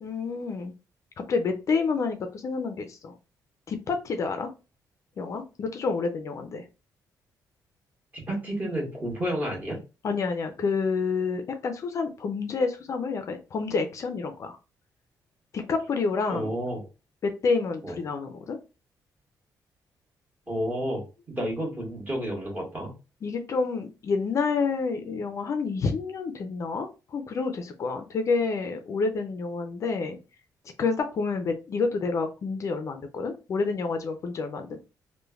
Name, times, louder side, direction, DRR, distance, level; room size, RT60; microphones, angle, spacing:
voice 1, 0.0-0.7 1.3-3.1 3.7-4.5 5.2-6.6 10.0-14.6 15.5-16.5 17.2-18.6 23.2-30.2 30.8-34.8, left 4 dB, 50° left, 6 dB, 0.4 m, -28 dB
voice 2, 8.1-9.8 16.3-16.8 17.8-18.0 20.5-22.9, equal, 25° right, -2 dB, 1.3 m, -31 dB
3.1 x 2.1 x 2.3 m, 0.30 s
cardioid pair, 125°, 7 cm